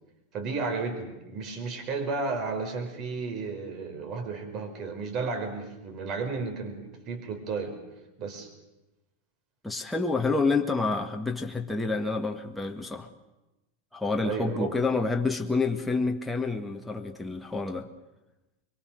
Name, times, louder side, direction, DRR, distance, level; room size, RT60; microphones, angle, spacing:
voice 1, 0.3-7.8 8.2-8.5 14.2-14.7, right 4 dB, 45° right, 6 dB, 5.3 m, -33 dB
voice 2, 9.6-13.1 13.9-17.9, left 3 dB, 5° left, 2 dB, 1.9 m, -28 dB
24.0 x 23.0 x 6.6 m, 1.0 s
hypercardioid pair, 95°, 0 cm